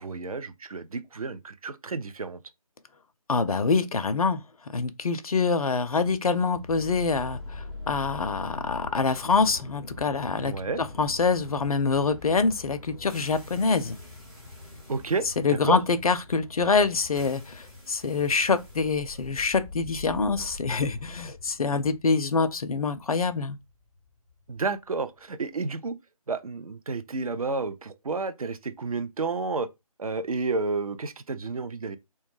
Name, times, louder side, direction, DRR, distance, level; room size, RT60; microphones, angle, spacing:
voice 1, 0.0-2.4 10.4-10.8 14.9-15.8 24.5-26.0 26.3-29.7 30.0-32.0, right 4 dB, 65° right, 0.4 m, -31 dB
voice 2, 3.3-4.4 4.7-10.5 11.0-14.0 15.4-23.6, left 4 dB, 70° left, 0.4 m, -25 dB
sound 1, 6.5-24.6, left 2 dB, 10° right, 0.6 m, -43 dB
2.2 x 2.1 x 3.2 m
figure-of-eight pair, 155°, 19 cm